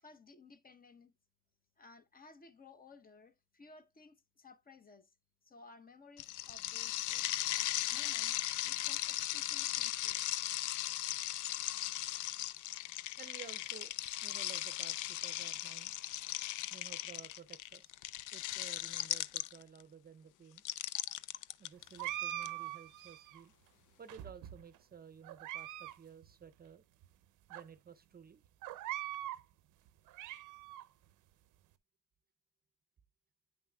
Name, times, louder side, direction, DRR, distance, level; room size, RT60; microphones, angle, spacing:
voice 1, 0.0-1.1 1.8-5.1 5.4-7.4 7.9-10.3, left 3 dB, 30° left, 0.8 m, -58 dB
sound 1, 6.2-19.8 20.6-22.5, left 14 dB, 85° left, 0.5 m, -38 dB
voice 2, 13.1-13.9 14.2-15.9 16.7-17.9 18.3-20.6 21.6-23.5 24.0-26.8 27.5-28.4, right 7 dB, 30° right, 0.6 m, -54 dB
sound 2, 22.0-23.4 24.1-24.8 25.2-25.9 26.2-26.3 27.0-27.1 27.5-27.6 28.6-29.4 29.9-30.8, right 14 dB, 85° right, 0.6 m, -42 dB
9.0 x 5.7 x 2.2 m
cardioid pair, 90°, 30 cm